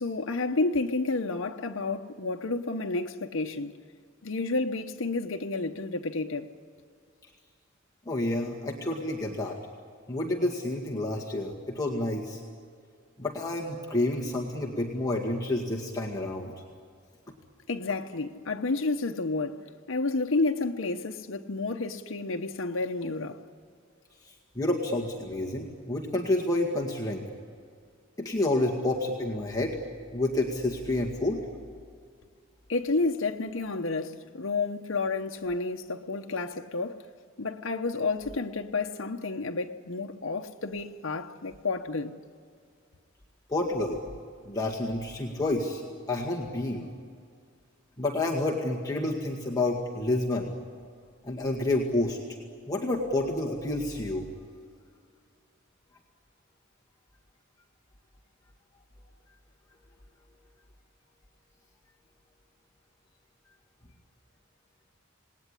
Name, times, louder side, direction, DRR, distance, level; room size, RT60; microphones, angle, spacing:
voice 1, 0.0-3.7 4.2-6.5 17.7-19.6 19.9-23.4 32.7-37.0 37.4-42.1, left 3 dB, 75° left, 0.9 m, -30 dB
voice 2, 8.1-9.6 10.1-12.4 13.2-16.5 24.6-27.3 28.2-29.8 30.1-31.4 43.5-44.0 44.4-45.8 46.1-46.9 48.0-50.5 51.2-52.2 52.7-54.3, left 2 dB, 20° left, 2.0 m, -29 dB
27.5 x 19.0 x 9.8 m
head